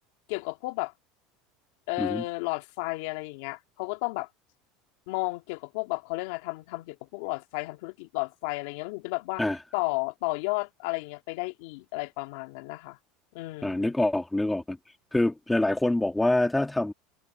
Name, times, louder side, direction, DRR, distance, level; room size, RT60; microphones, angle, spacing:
voice 1, 0.3-0.9 1.9-4.3 5.1-9.4 9.7-13.0 13.3-13.9, left 24 dB, 75° left, 2.4 m, -33 dB
voice 2, 13.6-14.8 15.1-16.9, left 1 dB, 5° left, 2.3 m, -25 dB
supercardioid pair, 135°, 0 cm